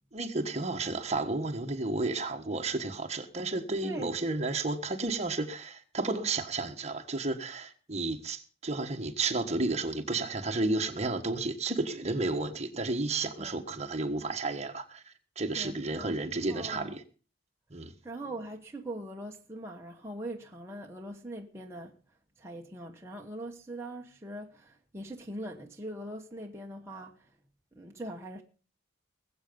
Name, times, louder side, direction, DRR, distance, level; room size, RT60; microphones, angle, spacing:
voice 1, 0.1-17.0 17.7-17.9, right 3 dB, 35° right, 1.4 m, -32 dB
voice 2, 3.8-4.2 13.4-13.6 15.6-16.2 16.5-17.0 18.0-22.0 22.4-27.3 27.7-28.4, right 1 dB, 15° right, 1.2 m, -41 dB
20.5 x 8.0 x 5.4 m
head